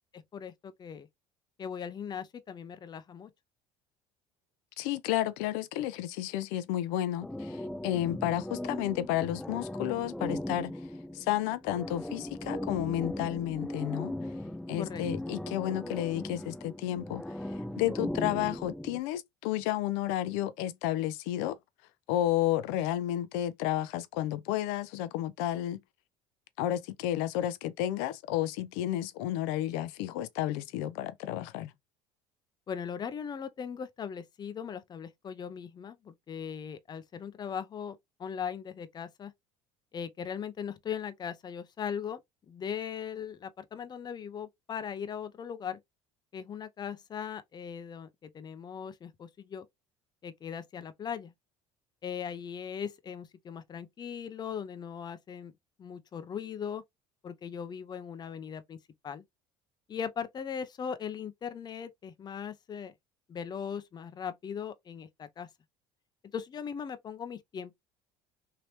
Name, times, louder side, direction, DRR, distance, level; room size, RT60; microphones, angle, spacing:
voice 1, 0.1-1.1 1.6-3.3 14.8-15.0 32.7-39.3 39.9-42.2 42.5-45.8 46.3-49.7 50.2-51.3 52.0-55.5 55.8-56.8 57.2-58.8 59.0-59.2 59.9-62.9 63.3-65.5 66.3-67.8, left 7 dB, 35° left, 0.7 m, -39 dB
voice 2, 4.8-10.9 11.1-14.3 14.7-21.6 22.1-25.8 26.6-31.7, left 13 dB, 85° left, 0.6 m, -32 dB
sound 1, 7.2-19.0, left 1 dB, 5° left, 0.5 m, -38 dB
3.3 x 2.9 x 2.8 m
supercardioid pair, 100°, 12 cm